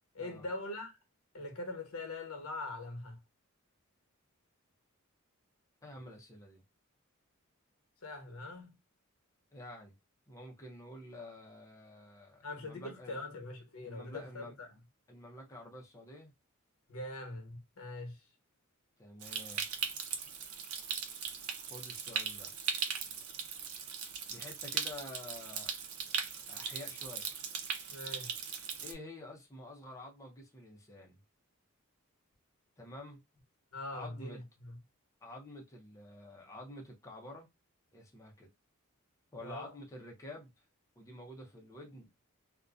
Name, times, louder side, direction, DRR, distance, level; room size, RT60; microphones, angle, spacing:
voice 1, 0.1-0.9 1.3-3.2 8.0-8.8 12.4-14.7 16.9-18.2 27.9-28.4 33.7-34.8 39.4-39.8, left 2 dB, 85° left, 0.9 m, -42 dB
voice 2, 5.8-6.6 9.5-9.9 10.3-13.2 13.8-14.5 15.1-16.3 19.0-19.6 21.6-22.5 24.3-25.7 26.5-27.3 28.8-31.2 32.8-33.2 33.9-34.4 35.2-37.5 37.9-38.5 39.3-40.5 41.0-42.1, left 1 dB, 15° left, 0.6 m, -49 dB
Stream, 19.2-28.9, right 7 dB, 90° right, 0.5 m, -39 dB
2.5 x 2.1 x 2.3 m
head